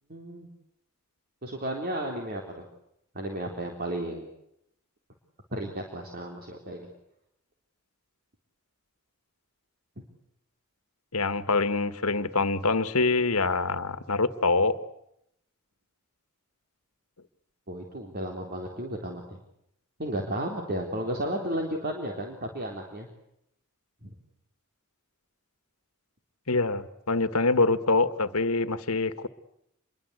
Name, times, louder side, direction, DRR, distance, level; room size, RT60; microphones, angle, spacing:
voice 1, 0.1-0.5 1.4-2.4 3.1-4.3 5.5-6.9 17.7-19.4 20.0-23.1 24.0-24.1, right 1 dB, 45° right, 2 dB, 3.8 m, -33 dB
voice 2, 11.1-14.7 26.5-29.3, left 3 dB, 75° left, 12 dB, 1.7 m, -25 dB
27.0 x 22.5 x 8.2 m, 0.77 s
head